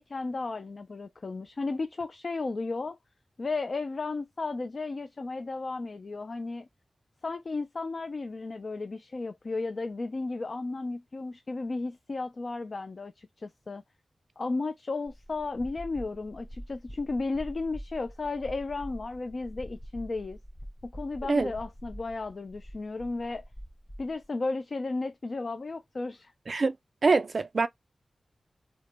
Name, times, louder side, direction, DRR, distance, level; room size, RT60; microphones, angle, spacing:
voice 1, 0.0-3.0 3.4-6.7 7.2-13.8 14.4-20.4 20.8-23.4 24.0-26.3, left 3 dB, 50° left, 0.3 m, -34 dB
sound 1, 15.1-24.2, equal, 30° left, 0.9 m, -45 dB
voice 2, 27.0-27.7, right 4 dB, 55° right, 0.3 m, -24 dB
2.9 x 2.1 x 3.2 m
wide cardioid pair, 100°, 0 cm